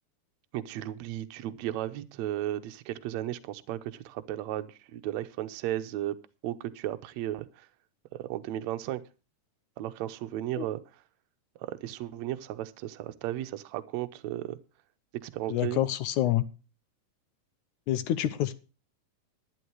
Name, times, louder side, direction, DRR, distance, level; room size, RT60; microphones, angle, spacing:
voice 1, 0.5-6.2 6.4-7.7 8.1-9.0 9.8-10.8 11.6-14.6 15.2-15.8, right 13 dB, 70° right, 10 dB, 1.9 m, -35 dB
voice 2, 15.5-16.4 17.9-18.5, left 13 dB, 75° left, 13 dB, 2.1 m, -27 dB
11.5 x 11.0 x 4.7 m, 0.33 s
omnidirectional pair, 3.8 m